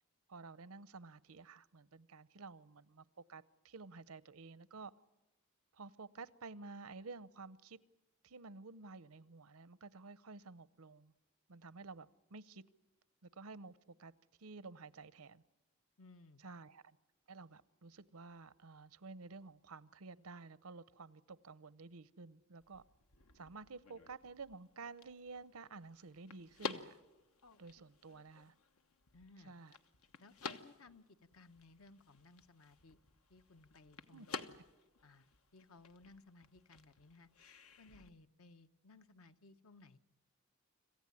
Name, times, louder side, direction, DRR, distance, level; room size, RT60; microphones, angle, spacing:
voice 1, 0.3-4.9 5.7-7.8 8.2-11.1 11.5-12.6 13.2-14.1 14.4-15.4 16.4-17.0 17.3-22.8 23.3-27.0 27.6-28.5 29.4-29.8 34.1-34.3, right 4 dB, 85° right, 0.8 m, -52 dB
voice 2, 16.0-16.4 29.1-29.5 30.2-33.0 33.3-34.6 35.0-37.3 37.8-40.0, left 3 dB, 75° left, 1.0 m, -61 dB
sound 1, 22.6-38.1, left 4 dB, 90° left, 1.2 m, -52 dB
26.5 x 15.5 x 9.7 m
head